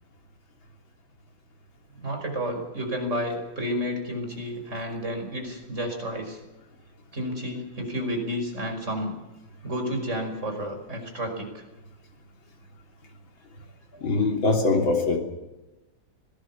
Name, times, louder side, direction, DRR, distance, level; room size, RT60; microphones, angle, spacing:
voice 1, 2.0-6.4 7.1-9.1 9.6-11.6, equal, 35° right, 4 dB, 5.6 m, -31 dB
voice 2, 13.9-15.2, left 3 dB, 70° left, 2 dB, 3.8 m, -22 dB
25.5 x 18.0 x 7.2 m, 1.0 s
omnidirectional pair, 2.2 m